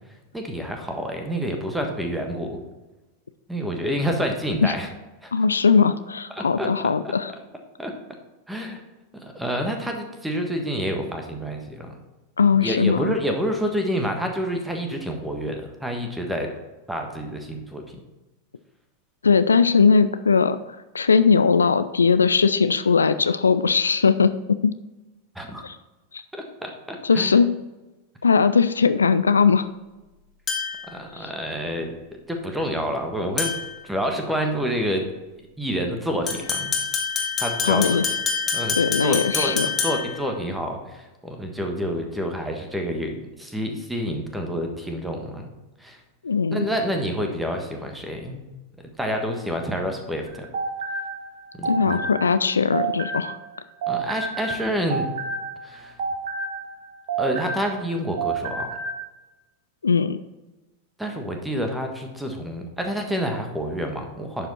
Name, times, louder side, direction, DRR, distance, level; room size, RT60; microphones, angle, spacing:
voice 1, 0.3-2.6 3.5-4.9 5.2-5.3 6.3-6.7 7.0-7.1 7.8-7.9 8.5-8.8 9.1-12.0 12.6-16.5 16.9-17.8 25.3-25.6 26.3-27.4 30.9-31.9 32.3-33.5 33.8-35.1 35.6-36.7 37.4-38.0 38.5-45.5 45.8-46.0 46.5-48.4 49.0-50.5 51.5-52.0 53.9-55.1 55.6-56.0 57.2-58.8 61.0-64.5, equal, 5° right, 3 dB, 1.4 m, -28 dB
voice 2, 5.3-7.3 12.4-13.1 19.2-20.6 20.9-24.3 24.6-24.7 25.6-25.8 26.1-26.2 27.0-27.5 28.2-29.7 31.1-31.2 37.6-38.1 38.8-39.7 46.2-46.6 51.6-53.4 59.8-60.2, left 5 dB, 75° left, 12 dB, 0.3 m, -19 dB
sound 1, 30.5-30.9 33.4-33.8 36.3-40.2, left 5 dB, 20° left, 1.6 m, -26 dB
sound 2, 50.3-53.5 53.8-57.9 58.2-59.0, right 4 dB, 55° right, 1.2 m, -30 dB
10.5 x 5.0 x 4.3 m, 1.1 s
figure-of-eight pair, 90°, 0 cm